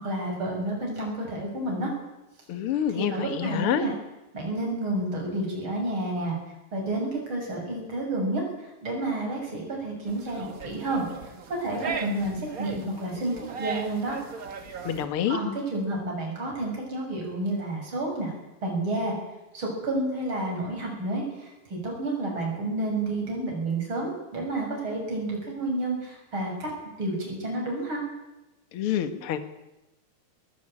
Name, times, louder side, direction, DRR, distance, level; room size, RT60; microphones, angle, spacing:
voice 1, 0.0-1.9 2.9-3.9 4.3-6.4 6.7-11.1 11.5-14.2 14.9-18.3 18.6-19.2 19.5-26.7 27.0-28.0, right 2 dB, 30° right, -1 dB, 7.4 m, -30 dB
voice 2, 2.5-3.9 14.8-15.4 28.7-29.4, left 9 dB, 55° left, 10 dB, 1.6 m, -27 dB
sound 1, 10.0-15.0, right 5 dB, 85° right, 0.7 m, -37 dB
21.0 x 16.0 x 9.0 m, 0.99 s
omnidirectional pair, 4.3 m